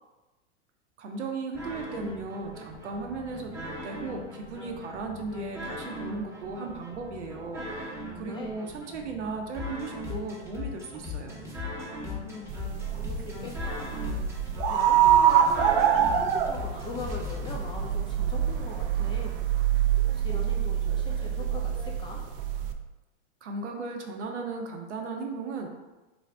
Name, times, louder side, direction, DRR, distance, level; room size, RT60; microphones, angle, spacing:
voice 1, 1.0-11.4 23.4-25.7, right 3 dB, 80° right, 3 dB, 0.8 m, -36 dB
sound 1, 1.5-17.5, left 3 dB, 10° right, 0.8 m, -39 dB
voice 2, 12.2-14.0 14.7-19.4 20.1-22.2, left 3 dB, 15° left, -1 dB, 0.5 m, -41 dB
sound 2, 12.5-22.7, right 9 dB, 50° right, 0.5 m, -25 dB
3.9 x 2.7 x 3.3 m, 1.1 s
hypercardioid pair, 105°, 35 cm